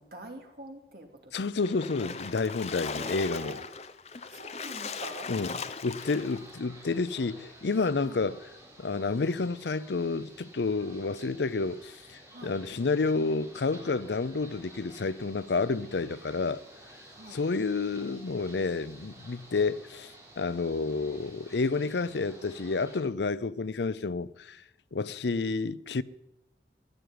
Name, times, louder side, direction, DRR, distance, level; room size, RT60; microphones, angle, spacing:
voice 1, 0.0-1.4 2.9-3.6 4.3-5.3 8.0-8.2 12.3-12.6 17.1-17.4, right 1 dB, 60° right, 2.9 m, -45 dB
voice 2, 1.3-3.6 5.3-5.5 5.8-8.4 8.8-16.6 17.3-24.6 24.9-26.0, left 4 dB, 80° left, 0.6 m, -30 dB
Splash splatter, 1.6-6.5, left 5 dB, 35° left, 0.7 m, -38 dB
sound 1, 6.0-23.0, right 1 dB, 15° right, 3.5 m, -52 dB
14.0 x 10.5 x 9.6 m
head